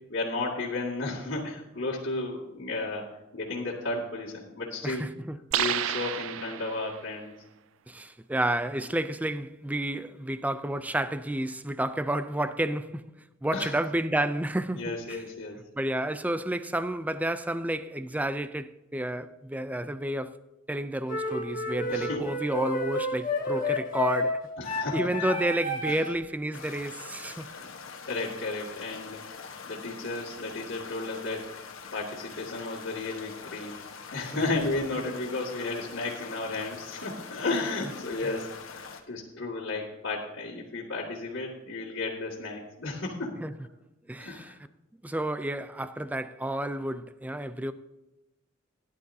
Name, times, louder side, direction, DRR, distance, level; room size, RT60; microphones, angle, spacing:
voice 1, 0.1-3.1 3.3-5.0 5.5-7.3 13.5-13.7 14.8-15.6 21.9-22.3 24.6-25.1 25.9-26.0 27.4-27.7 28.1-29.2 29.7-31.5 31.9-33.7 34.1-43.4 44.2-44.6, left 3 dB, 65° left, 2.3 m, -33 dB
voice 2, 4.8-5.4 7.9-13.1 13.4-15.2 15.8-20.3 20.7-24.5 24.9-27.5 34.3-34.7 38.2-38.3 43.4-43.5 44.1-44.6 45.0-47.7, right 1 dB, 10° right, 0.4 m, -31 dB
sound 1, 5.5-7.1, right 11 dB, 75° right, 0.4 m, -30 dB
sound 2, 21.1-26.2, left 1 dB, 40° left, 1.7 m, -30 dB
sound 3, 26.5-39.0, left 5 dB, 85° left, 1.3 m, -44 dB
16.5 x 11.0 x 2.8 m
head